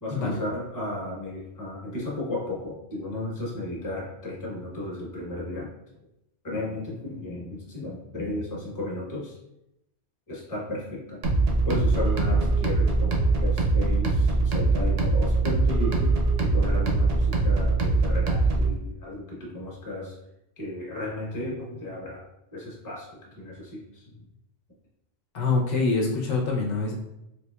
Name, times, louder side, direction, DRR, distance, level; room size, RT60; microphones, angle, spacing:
voice 1, 0.0-5.7 6.4-9.4 10.3-11.2 11.6-16.1 16.4-20.1 20.6-22.2 22.5-24.2, left 1 dB, 20° left, -5 dB, 0.8 m, -34 dB
sound 1, 11.2-18.7, right 3 dB, 80° right, 1.0 m, -22 dB
voice 2, 25.3-26.9, left 3 dB, 70° left, -1 dB, 0.9 m, -25 dB
3.9 x 2.8 x 2.2 m, 0.85 s
omnidirectional pair, 1.3 m